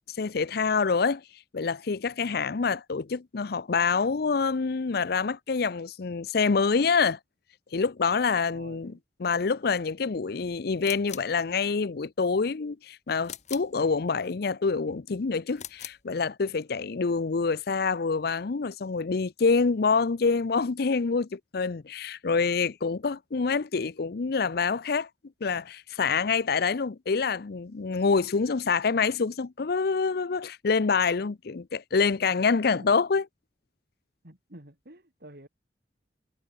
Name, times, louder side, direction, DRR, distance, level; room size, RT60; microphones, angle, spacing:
voice 1, 0.1-1.2 1.5-7.2 7.7-8.9 9.2-25.1 25.4-33.2, left 5 dB, 60° left, 0.6 m, -26 dB
voice 2, 2.2-2.7 8.5-9.0 32.8-32.9 34.2-35.5, right 1 dB, 60° right, 4.3 m, -50 dB
sound 1, 10.8-11.4 13.2-13.8 15.5-16.1, left 10 dB, 40° left, 2.3 m, -41 dB
head